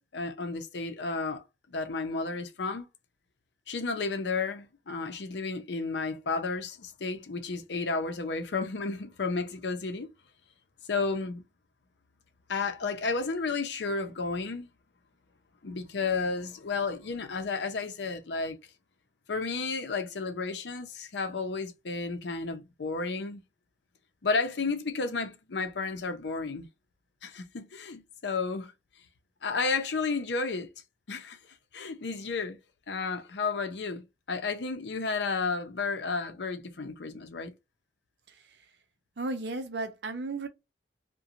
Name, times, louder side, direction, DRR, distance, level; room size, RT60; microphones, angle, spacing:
voice 1, 0.1-1.4 1.7-2.9 3.7-10.1 10.9-11.4 12.5-14.7 15.6-18.6 19.3-23.4 24.2-26.7 27.2-28.7 29.4-30.7 31.1-31.4 31.7-32.6 32.9-37.5, left 4 dB, 70° left, 0.6 m, -32 dB
voice 2, 39.2-40.5, right 3 dB, 65° right, 0.6 m, -34 dB
2.5 x 2.2 x 2.7 m
head